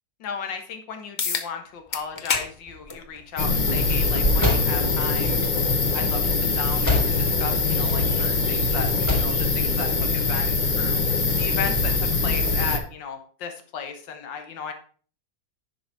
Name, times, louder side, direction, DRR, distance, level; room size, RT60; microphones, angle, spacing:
voice 1, 0.2-14.7, left 6 dB, 80° left, 6 dB, 1.9 m, -35 dB
sound 1, 1.2-1.5 1.9-2.5 2.9-3.0 4.1-4.2 9.1-9.2, left 5 dB, 60° left, 0.4 m, -27 dB
sound 2, 1.9-7.5 7.7-8.5 8.8-9.4, left 2 dB, 10° left, 3.3 m, -29 dB
sound 3, 3.4-12.8, left 3 dB, 35° left, 0.8 m, -23 dB
10.0 x 5.5 x 4.5 m, 0.43 s
omnidirectional pair, 2.0 m